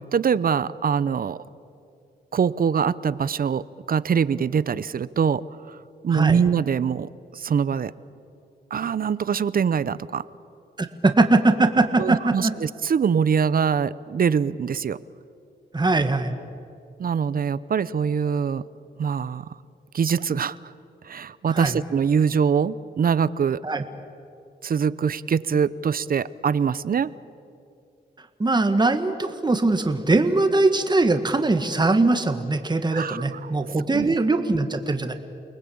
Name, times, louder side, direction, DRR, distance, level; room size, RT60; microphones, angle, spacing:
voice 1, 0.1-1.4 2.3-5.8 6.0-7.9 8.7-10.2 12.0-15.0 17.0-18.6 19.0-19.5 19.9-20.6 21.0-23.6 24.6-27.1 32.9-33.5 33.9-34.1, right 7 dB, 55° right, 17 dB, 0.7 m, -23 dB
voice 2, 10.8-12.5 15.7-16.4 21.5-21.8 23.6-23.8 28.4-35.1, right 2 dB, 25° right, 7 dB, 1.8 m, -21 dB
29.5 x 19.5 x 8.7 m, 2.5 s
cardioid pair, 75°, 18 cm